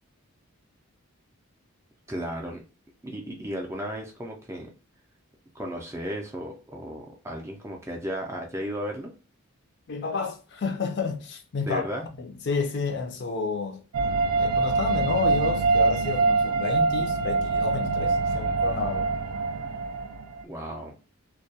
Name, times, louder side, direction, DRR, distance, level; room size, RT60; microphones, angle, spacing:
voice 1, 2.1-2.6 3.0-4.7 5.5-9.1 11.6-12.0 20.4-21.0, equal, 10° right, 0.4 m, -34 dB
voice 2, 9.9-11.8 12.2-13.8 14.4-19.1, left 4 dB, 50° left, 0.4 m, -30 dB
sound 1, 13.9-20.4, right 3 dB, 80° right, 0.4 m, -24 dB
2.2 x 2.2 x 2.7 m
head